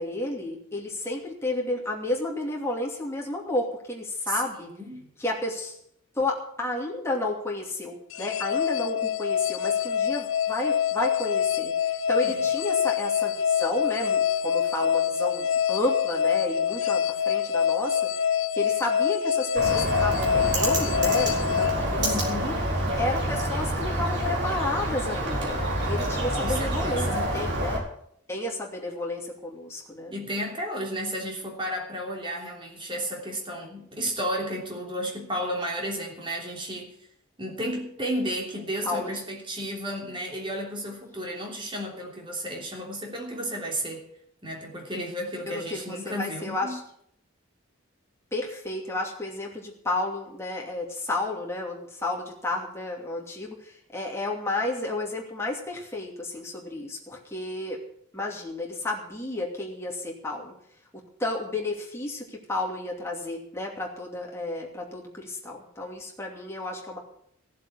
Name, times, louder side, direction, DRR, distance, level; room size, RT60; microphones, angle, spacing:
voice 1, 0.0-4.7 5.2-5.8 6.1-22.1 22.4-22.6 23.0-27.8 28.3-30.1 38.8-39.2 45.5-46.8 48.3-57.8 58.1-60.5 60.9-67.0, left 2 dB, 15° left, -1 dB, 2.7 m, -32 dB
voice 2, 4.8-5.1 12.2-12.5 22.0-22.6 26.4-27.3 30.1-37.0 37.4-44.0 44.4-46.8, equal, 25° right, 0 dB, 3.1 m, -33 dB
sound 1, 8.1-22.5, left 8 dB, 70° left, 0.5 m, -25 dB
Bird, 19.6-27.8, right 1 dB, 55° right, 4.2 m, -27 dB
15.5 x 7.6 x 8.2 m, 0.72 s
head